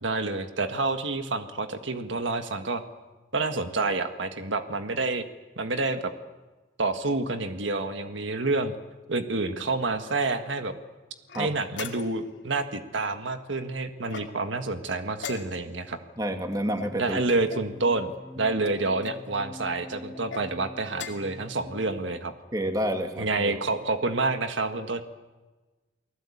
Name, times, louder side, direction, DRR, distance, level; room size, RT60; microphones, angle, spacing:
voice 1, 0.0-2.8 3.3-5.2 5.6-6.1 6.8-8.7 9.1-10.7 11.4-16.0 17.0-22.3 23.2-25.0, right 3 dB, 80° right, 7 dB, 1.7 m, -28 dB
sound 1, 11.3-12.3 14.0-14.6 15.2-15.9 16.8-17.7 18.6-19.2 20.1-20.5 20.9-21.4, left 6 dB, 75° left, 2.5 m, -41 dB
voice 2, 16.2-17.2 22.5-23.6, equal, 20° right, 5 dB, 2.4 m, -29 dB
sound 2, 16.6-22.3, left 1 dB, 5° left, 2.1 m, -45 dB
29.5 x 19.5 x 8.6 m, 1.2 s
head